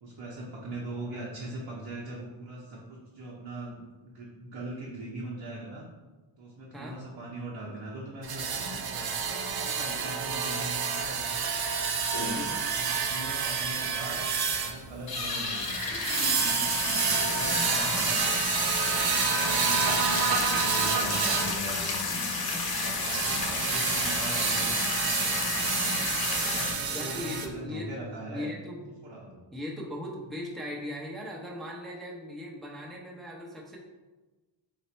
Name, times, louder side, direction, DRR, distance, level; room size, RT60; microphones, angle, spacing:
voice 1, 0.0-5.8 6.4-11.3 12.7-14.2 14.6-15.8 16.3-18.3 18.8-25.6 26.2-28.5 29.0-29.4, right 2 dB, 65° right, -5 dB, 0.9 m, -41 dB
sound 1, 8.2-21.6 22.7-27.5, right 5 dB, 50° right, 0.6 m, -29 dB
sound 2, 11.0-11.1 11.5-11.6 12.0-12.7 13.0-13.1 13.3-13.4 13.8-13.9 14.4-14.6 15.0-26.7, left 3 dB, 50° left, 0.8 m, -31 dB
voice 2, 12.3-12.7 19.7-20.0 26.9-27.9 28.3-28.8 29.5-33.8, left 1 dB, ahead, -3 dB, 0.7 m, -39 dB
4.2 x 2.1 x 4.3 m, 1.2 s
cardioid pair, 70°, 47 cm